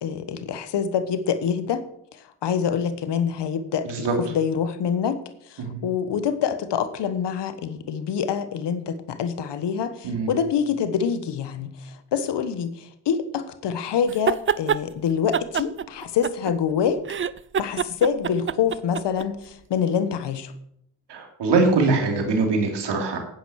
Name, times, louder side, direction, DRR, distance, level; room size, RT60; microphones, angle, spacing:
voice 1, 0.0-1.8 2.1-5.2 5.5-17.0 17.6-20.5, left 7 dB, 80° left, 1.3 m, -26 dB
sound 1, 14.1-14.8 15.3-16.7 17.0-19.3, right 7 dB, 30° right, 0.5 m, -25 dB
voice 2, 21.1-23.2, right 3 dB, 80° right, 3.3 m, -22 dB
10.5 x 9.5 x 6.5 m
cardioid pair, 70°, 41 cm